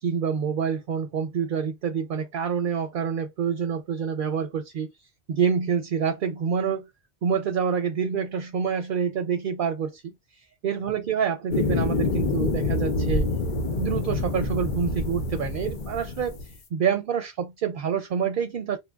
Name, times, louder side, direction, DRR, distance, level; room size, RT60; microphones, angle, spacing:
voice 1, 0.0-4.9 5.3-6.9 7.2-10.1 10.6-13.3 13.7-16.4 16.7-18.8, right 7 dB, 60° right, 0.6 m, -27 dB
sound 1, 11.5-16.5, left 3 dB, 55° left, 0.7 m, -27 dB
3.0 x 2.3 x 2.2 m
omnidirectional pair, 1.1 m